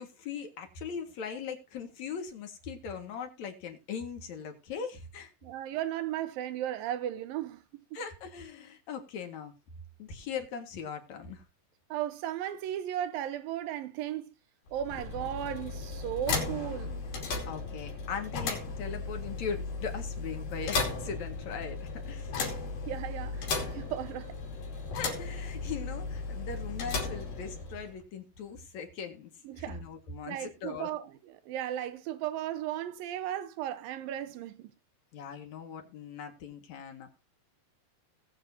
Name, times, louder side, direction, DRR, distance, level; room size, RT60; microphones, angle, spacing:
voice 1, 0.0-5.3 7.9-9.5 10.0-11.4 17.5-22.3 24.9-30.9 35.1-37.1, left 6 dB, 60° left, 3.0 m, -40 dB
voice 2, 5.4-7.6 11.9-14.3 14.7-17.1 22.9-23.4 23.7-24.3 29.5-29.8 30.3-34.7, right 11 dB, 90° right, 2.7 m, -35 dB
sound 1, 14.7-28.0, left 4 dB, 90° left, 4.5 m, -36 dB
19.5 x 7.8 x 2.8 m
omnidirectional pair, 4.0 m